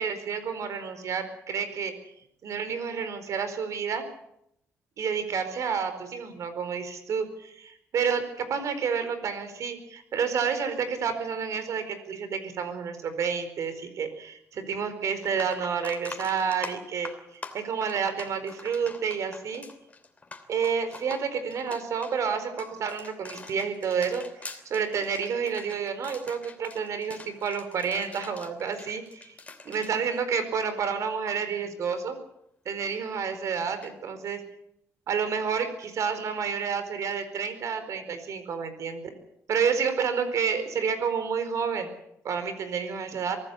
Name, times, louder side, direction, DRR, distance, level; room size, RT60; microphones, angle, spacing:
voice 1, 0.0-1.9 2.4-4.0 5.0-19.6 20.5-29.3 29.6-32.2 32.6-34.4 35.1-39.0 39.5-41.9 42.2-43.4, right 6 dB, 65° right, 10 dB, 4.5 m, -30 dB
sound 1, 14.7-14.8 15.2-30.8 31.1-31.4 33.8-33.9, left 3 dB, 25° left, 3.0 m, -44 dB
23.5 x 15.5 x 8.4 m, 0.77 s
cardioid pair, 100°, 6 cm